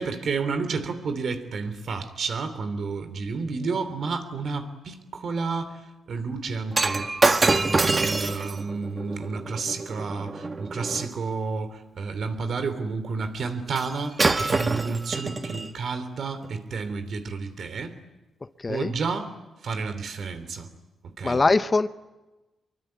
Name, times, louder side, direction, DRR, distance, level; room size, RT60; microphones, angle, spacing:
voice 1, 0.0-7.1 7.4-18.0 18.7-19.3 19.6-20.7 21.2-21.4, right 4 dB, 60° right, 10 dB, 3.1 m, -31 dB
Shatter, 6.7-11.1 13.8-13.9 14.2-15.7 16.4-16.6, right 3 dB, 30° right, 1.5 m, -25 dB
voice 2, 18.4-18.9 21.2-21.9, left 3 dB, 30° left, 12 dB, 0.9 m, -22 dB
25.5 x 23.5 x 9.5 m, 1.1 s
cardioid pair, 95°, 0 cm